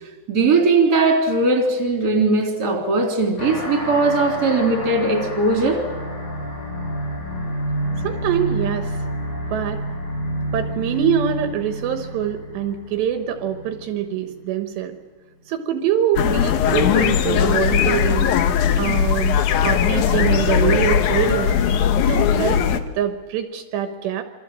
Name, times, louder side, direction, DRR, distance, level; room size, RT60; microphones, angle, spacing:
voice 1, 0.3-5.8, right 3 dB, 25° right, 2 dB, 3.4 m, -19 dB
sound 1, 3.4-14.4, equal, 50° left, 6.0 m, -29 dB
voice 2, 8.0-9.0 9.5-9.8 10.5-15.0 15.5-18.3 18.8-21.6 22.1-24.2, right 9 dB, 75° right, 7 dB, 3.1 m, -24 dB
sound 2, 16.2-22.8, left 8 dB, 85° left, 1.7 m, -19 dB
27.5 x 23.0 x 7.5 m, 1.4 s
omnidirectional pair, 5.2 m